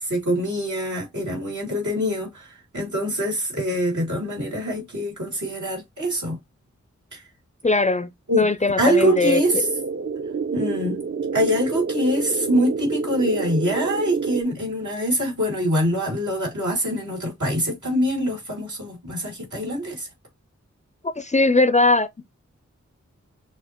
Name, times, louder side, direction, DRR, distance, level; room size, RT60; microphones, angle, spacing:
voice 1, 0.0-6.4 7.1-7.2 8.3-8.5 8.8-9.7 10.5-11.0 11.3-20.1, equal, 85° right, 2.4 m, -24 dB
voice 2, 7.6-8.1 8.4-9.4 21.2-22.2, left 2 dB, 25° left, 0.4 m, -20 dB
sound 1, 9.0-14.4, right 5 dB, 50° right, 0.5 m, -28 dB
6.2 x 2.1 x 2.9 m
wide cardioid pair, 45°, 29 cm